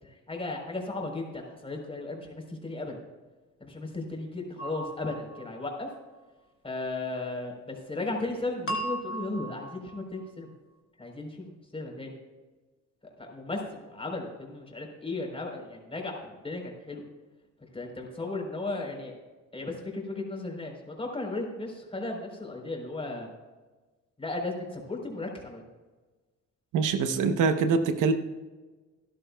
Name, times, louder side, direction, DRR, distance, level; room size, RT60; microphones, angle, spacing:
voice 1, 0.0-3.0 3.6-5.9 6.6-10.5 11.0-12.1 13.2-17.0 17.6-19.1 19.5-23.3 24.2-25.6, left 2 dB, 20° left, 1 dB, 4.0 m, -35 dB
sound 1, 4.6-5.7 8.7-10.1, right 1 dB, 45° left, 2.1 m, -37 dB
voice 2, 26.7-28.1, right 5 dB, 80° right, 8 dB, 1.0 m, -24 dB
17.5 x 11.5 x 2.3 m, 1.3 s
cardioid pair, 90°, 30 cm